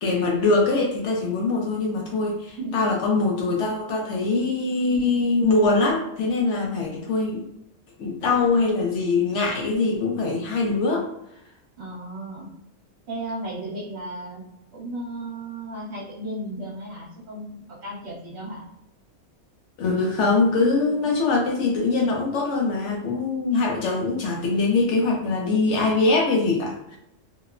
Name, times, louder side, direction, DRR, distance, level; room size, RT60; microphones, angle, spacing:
voice 1, 0.0-7.4 8.0-11.1 19.8-27.0, left 3 dB, 70° left, 0 dB, 0.8 m, -23 dB
voice 2, 2.6-2.9 11.8-12.5 13.1-14.4 14.7-18.6, right 1 dB, 55° right, -5 dB, 1.0 m, -34 dB
2.8 x 2.0 x 2.4 m, 0.80 s
omnidirectional pair, 1.4 m